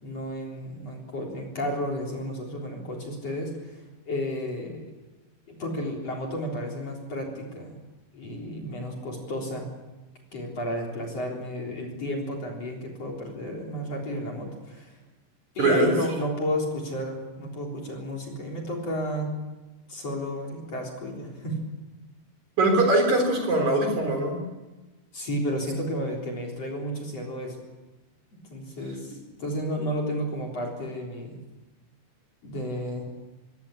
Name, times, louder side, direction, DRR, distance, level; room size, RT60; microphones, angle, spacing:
voice 1, 0.0-4.8 5.5-7.8 8.1-9.7 10.3-14.9 15.5-19.3 19.9-21.6 25.1-27.6 28.5-31.4 32.4-33.0, equal, 40° left, 0 dB, 4.6 m, -32 dB
voice 2, 15.6-15.9 22.6-24.4, right 2 dB, 45° right, 3 dB, 4.7 m, -22 dB
22.5 x 18.0 x 8.5 m, 1.1 s
omnidirectional pair, 4.9 m